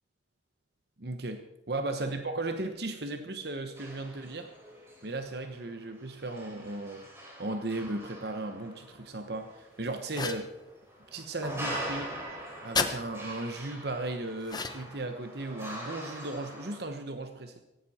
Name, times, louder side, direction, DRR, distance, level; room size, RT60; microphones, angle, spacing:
voice 1, 1.0-4.5 5.0-7.0 7.4-10.5 11.1-12.2 12.6-17.6, right 2 dB, 60° right, 7 dB, 1.1 m, -36 dB
sound 1, 3.7-16.8, right 1 dB, 15° right, 4.7 m, -43 dB
sound 2, 10.1-10.5 12.7-13.0 14.5-15.0, left 5 dB, 25° left, 1.0 m, -31 dB
17.5 x 15.5 x 4.3 m, 0.91 s
head